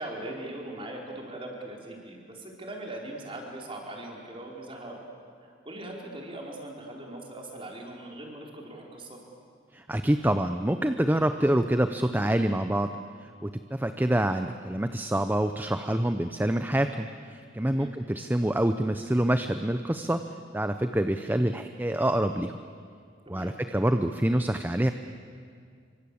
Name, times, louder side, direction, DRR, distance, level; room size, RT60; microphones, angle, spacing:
voice 1, 0.0-5.0 5.4-9.2 17.6-17.9 23.3-23.6, right 1 dB, 30° right, 0 dB, 4.8 m, -40 dB
voice 2, 9.7-12.9 13.2-20.2 20.5-22.6 23.3-24.9, right 1 dB, 10° right, 8 dB, 0.7 m, -26 dB
27.0 x 25.0 x 8.6 m, 2.2 s
head